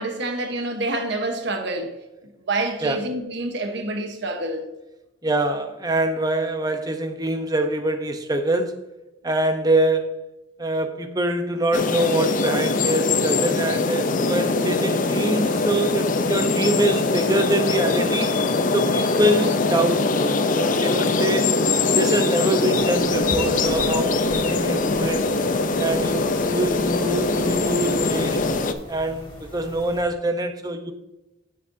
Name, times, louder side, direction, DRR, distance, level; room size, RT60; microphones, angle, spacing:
voice 1, 0.0-1.9 2.5-4.7, right 2 dB, 60° right, 4 dB, 1.2 m, -27 dB
voice 2, 5.2-8.9 9.2-10.2 10.6-18.4 18.7-21.5 21.9-25.2 25.8-28.5 28.9-30.9, right 1 dB, 20° right, 7 dB, 0.8 m, -24 dB
sound 1, 11.7-28.7, left 3 dB, 45° left, 0.6 m, -22 dB
sound 2, 22.7-30.0, equal, 25° left, 3.1 m, -42 dB
10.5 x 7.5 x 2.7 m, 0.99 s
head